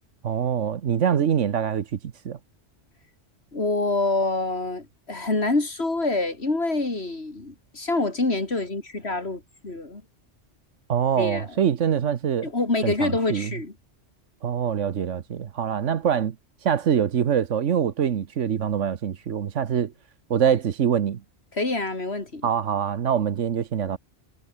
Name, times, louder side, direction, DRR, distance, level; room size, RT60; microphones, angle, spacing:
voice 1, 0.2-2.0 2.2-2.4 10.9-12.5 12.8-13.5 14.4-16.3 16.6-19.9 20.3-21.2 22.4-24.0, right 8 dB, 80° right, 1.4 m, -24 dB
voice 2, 3.5-10.0 11.2-11.5 12.4-13.7 21.5-22.5, left 2 dB, 60° left, 3.6 m, -26 dB
omnidirectional pair, 1.2 m